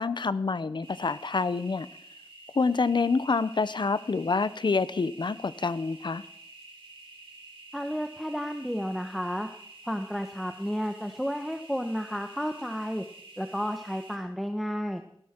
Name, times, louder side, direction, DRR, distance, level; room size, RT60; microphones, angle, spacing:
voice 1, 0.0-1.9 2.6-6.2, left 4 dB, 60° left, 15 dB, 0.8 m, -27 dB
sound 1, 0.8-14.2, right 2 dB, 85° right, 4.3 m, -50 dB
voice 2, 7.7-9.5 9.9-13.0 13.4-15.0, equal, ahead, 6 dB, 1.2 m, -32 dB
18.5 x 16.5 x 4.5 m, 0.69 s
wide cardioid pair, 55°, 9 cm